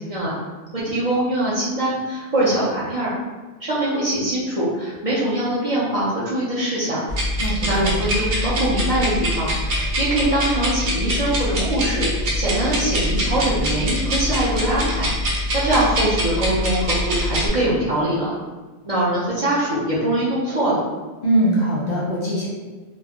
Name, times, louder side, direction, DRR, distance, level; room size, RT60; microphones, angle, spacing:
voice 1, 0.7-3.1 3.6-7.0 7.6-18.3 18.8-20.8, right 1 dB, 40° right, -9 dB, 0.6 m, -23 dB
sound 1, 7.1-17.5, equal, 60° right, 0.9 m, -24 dB
voice 2, 7.4-8.0 21.2-22.5, right 1 dB, 50° left, -6 dB, 0.7 m, -21 dB
2.3 x 2.1 x 3.5 m, 1.3 s
omnidirectional pair, 1.1 m